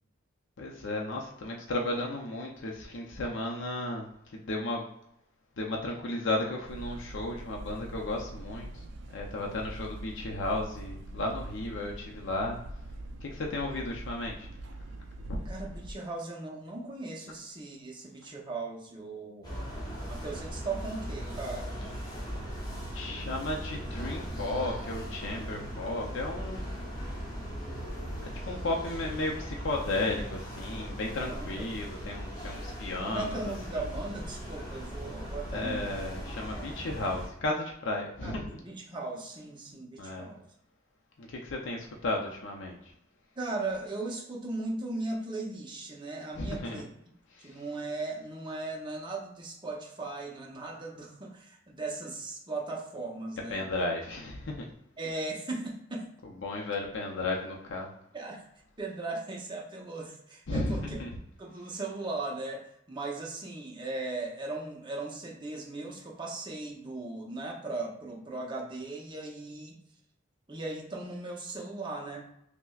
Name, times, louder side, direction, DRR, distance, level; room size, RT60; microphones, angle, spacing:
voice 1, 0.6-4.1 4.3-4.9 5.6-8.8 9.1-12.6 13.2-14.5 15.2-15.4 22.9-27.0 28.5-33.4 35.5-38.5 40.0-40.3 41.2-42.8 46.4-46.7 47.4-47.5 53.5-54.7 56.4-57.9 60.5-61.1, left 2 dB, 60° left, -1 dB, 0.5 m, -34 dB
sound 1, 6.7-15.9, right 1 dB, 60° right, 0.4 m, -43 dB
voice 2, 15.5-19.7 20.1-21.8 31.2-31.7 33.0-36.0 36.5-36.8 38.2-40.4 43.4-46.9 47.4-53.7 55.0-56.1 58.1-58.4 58.8-61.0 61.4-69.8 70.5-72.3, right 2 dB, 25° right, -1 dB, 0.6 m, -38 dB
sound 2, 19.4-37.3, equal, 20° left, 1.0 m, -39 dB
5.6 x 2.1 x 2.3 m, 0.77 s
head